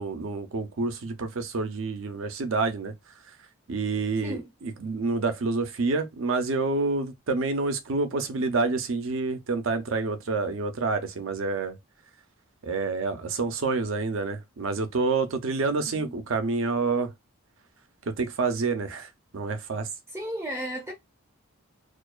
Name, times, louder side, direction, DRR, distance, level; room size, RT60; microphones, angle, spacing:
voice 1, 0.0-2.9 3.7-11.8 12.6-17.1 18.1-19.9, right 3 dB, 65° right, 0.5 m, -28 dB
voice 2, 20.1-20.9, equal, 10° right, 0.5 m, -34 dB
2.4 x 2.2 x 2.3 m
head